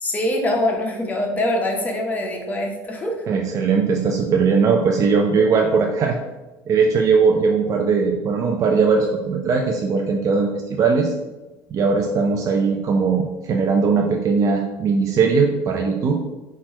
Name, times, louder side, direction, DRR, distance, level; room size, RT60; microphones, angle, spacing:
voice 1, 0.0-3.2, left 1 dB, 20° left, 0 dB, 1.0 m, -23 dB
voice 2, 3.3-6.2 6.7-11.1 11.7-16.2, right 5 dB, 45° right, 2 dB, 0.4 m, -19 dB
4.3 x 2.4 x 4.3 m, 1.1 s
supercardioid pair, 100°, 8 cm